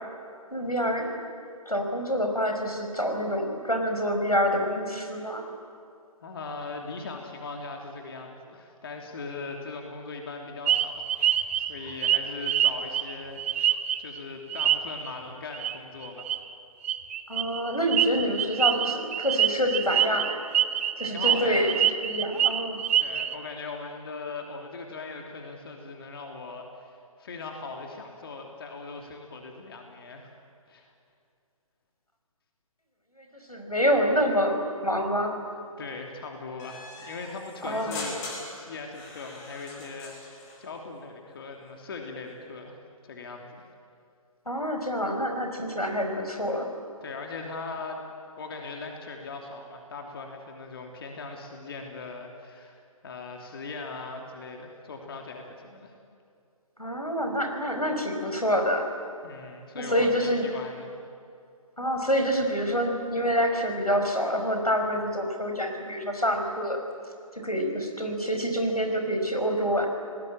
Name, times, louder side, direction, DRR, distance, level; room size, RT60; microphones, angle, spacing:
voice 1, 0.5-1.1 1.7-5.4 17.3-20.4 21.0-21.7 22.0-22.8 33.5-35.4 37.6-38.0 44.5-46.7 56.8-58.9 59.7-60.5 61.8-66.8 67.4-69.9, equal, 90° left, 4 dB, 5.3 m, -27 dB
voice 2, 6.2-13.4 14.0-16.2 21.1-21.8 23.0-30.4 30.7-30.9 35.8-38.2 38.5-43.7 47.0-48.0 48.4-52.8 53.0-55.9 59.2-60.9, left 3 dB, 40° left, 2 dB, 3.0 m, -39 dB
sound 1, 10.7-14.2 14.5-15.1 15.5-15.8 16.0-16.4 16.8-23.3, right 11 dB, 20° right, 0.7 m, -25 dB
sound 2, 36.6-40.6, left 2 dB, 20° left, 4.4 m, -41 dB
29.0 x 19.5 x 8.9 m, 2.4 s
figure-of-eight pair, 140°, 19 cm